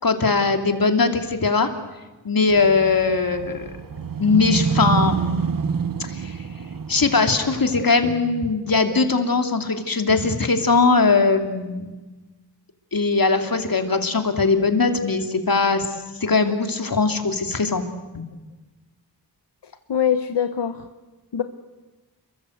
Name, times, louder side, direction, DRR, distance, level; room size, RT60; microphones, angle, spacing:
voice 1, 0.0-1.7 2.2-3.7 4.2-5.2 6.0-6.4 6.9-11.9 12.9-15.8 16.2-17.8 18.1-18.2, left 4 dB, 60° left, 6 dB, 3.0 m, -20 dB
sound 1, 2.5-7.8, right 5 dB, 55° right, 1.0 m, -27 dB
voice 2, 19.6-20.9 21.3-21.4, left 8 dB, 85° left, 9 dB, 1.2 m, -23 dB
29.5 x 23.0 x 8.0 m, 1.2 s
wide cardioid pair, 70°, 40 cm